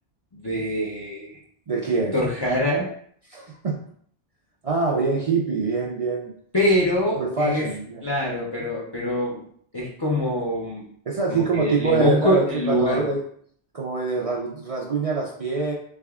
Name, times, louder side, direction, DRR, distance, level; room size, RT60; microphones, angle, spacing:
voice 1, 0.3-1.4 2.1-2.9 6.5-7.7 8.0-9.4 9.7-10.9 11.3-13.1, left 1 dB, 30° left, -5 dB, 0.4 m, -24 dB
voice 2, 1.7-2.2 3.3-3.8 4.6-6.3 7.1-8.0 11.1-13.2 13.7-15.7, right 4 dB, 60° right, -2 dB, 0.4 m, -24 dB
3.4 x 3.4 x 2.3 m, 0.62 s
omnidirectional pair, 1.1 m